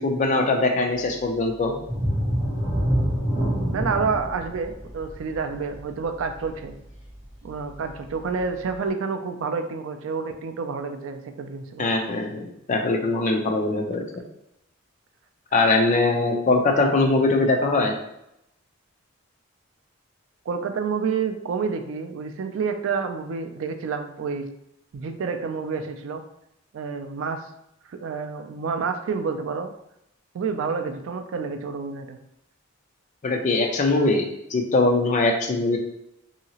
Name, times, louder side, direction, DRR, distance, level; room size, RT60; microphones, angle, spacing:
voice 1, 0.0-1.7 11.8-14.0 15.5-17.9 33.2-34.2 34.5-35.8, left 2 dB, 35° left, 3 dB, 0.4 m, -21 dB
sound 1, 1.8-7.3 7.7-7.9 8.4-8.5, equal, 10° right, 0.8 m, -26 dB
voice 2, 3.7-6.8 7.4-11.9 20.5-24.5 24.9-26.2 26.7-27.5 27.9-29.7 30.3-32.2, right 5 dB, 65° right, 7 dB, 0.3 m, -29 dB
2.8 x 2.8 x 2.8 m, 0.81 s
head